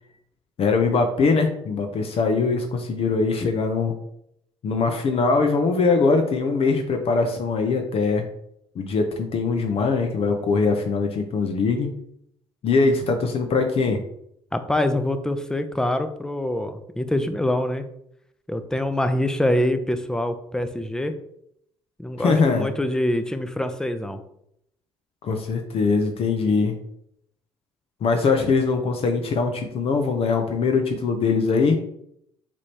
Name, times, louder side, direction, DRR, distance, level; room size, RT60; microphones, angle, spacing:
voice 1, 0.6-3.9 4.6-8.3 8.7-11.9 12.6-14.0 22.2-22.7 25.2-26.8 28.0-31.8, left 4 dB, 50° left, 5 dB, 0.7 m, -22 dB
voice 2, 14.5-17.9 18.5-21.1 22.0-24.2, left 1 dB, 5° left, 9 dB, 0.5 m, -25 dB
4.8 x 3.5 x 2.8 m, 0.73 s
hypercardioid pair, 65°, 13 cm